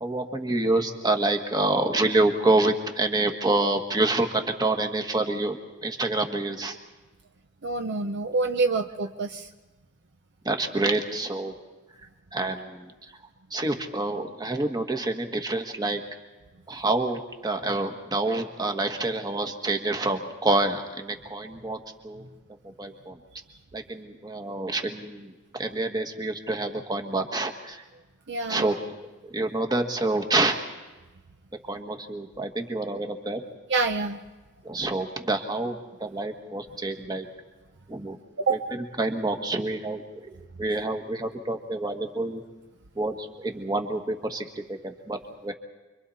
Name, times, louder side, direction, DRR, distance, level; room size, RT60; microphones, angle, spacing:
voice 1, 0.0-5.6 5.8-6.8 10.4-11.5 12.3-12.9 13.5-16.0 16.7-21.8 22.0-22.2 22.8-23.2 23.7-27.8 28.5-28.7 29.2-30.6 31.7-33.4 34.6-37.2 37.9-38.2 38.5-38.6 39.0-40.0 40.6-42.4 43.0-45.5, right 2 dB, 20° right, 4 dB, 1.6 m, -27 dB
voice 2, 7.6-9.5 28.3-28.7 33.7-34.2 38.4-38.6, right 3 dB, 55° right, 5 dB, 0.9 m, -26 dB
29.5 x 24.0 x 4.3 m, 1.2 s
head